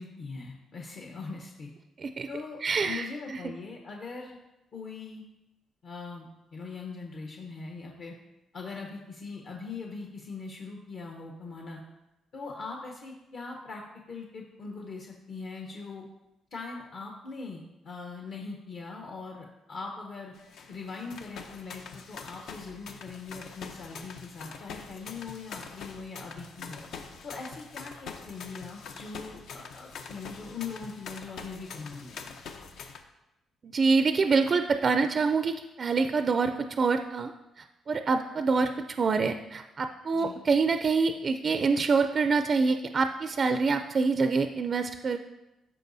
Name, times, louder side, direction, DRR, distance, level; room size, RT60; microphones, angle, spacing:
voice 1, 0.0-1.7 2.3-4.4 4.7-5.2 5.8-8.1 8.5-11.8 12.3-13.8 14.1-16.1 16.5-20.3 20.7-26.8 27.2-32.4 40.1-40.3, left 4 dB, 55° left, 0 dB, 0.9 m, -41 dB
voice 2, 2.6-3.6 33.6-37.3 37.6-45.2, right 4 dB, 40° right, 8 dB, 0.3 m, -26 dB
sound 1, 20.3-33.0, left 5 dB, 75° left, 0.7 m, -44 dB
13.0 x 4.8 x 2.7 m, 0.95 s
cardioid pair, 115°, 0 cm